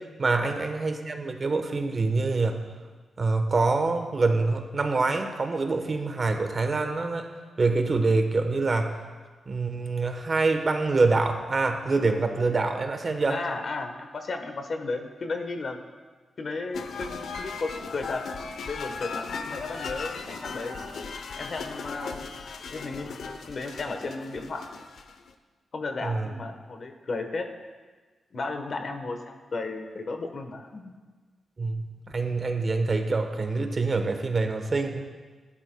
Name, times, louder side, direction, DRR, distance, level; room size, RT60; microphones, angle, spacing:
voice 1, 0.2-2.6 3.2-7.3 7.6-8.9 9.5-13.4 26.0-26.3 31.6-31.8 32.1-35.0, right 3 dB, 40° right, 5 dB, 1.0 m, -25 dB
voice 2, 13.3-15.8 16.4-18.3 18.6-20.8 21.4-22.2 22.7-23.2 23.5-24.7 25.7-27.5 28.3-30.9, left 3 dB, 55° left, 6 dB, 1.1 m, -34 dB
sound 1, 16.7-25.3, left 4 dB, 75° left, 0.7 m, -37 dB
15.0 x 11.5 x 2.2 m, 1.4 s
cardioid pair, 85°, 0 cm